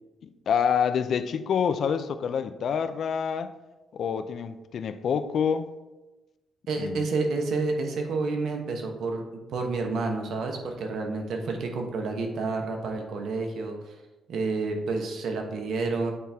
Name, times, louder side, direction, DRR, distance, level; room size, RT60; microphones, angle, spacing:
voice 1, 0.2-3.5 3.9-5.7 6.8-7.0, left 7 dB, 55° left, 0.4 m, -27 dB
voice 2, 6.7-9.2 9.5-13.9 14.3-16.1, right 3 dB, 70° right, 1.1 m, -29 dB
8.4 x 4.3 x 3.5 m
cardioid pair, 135°, 0 cm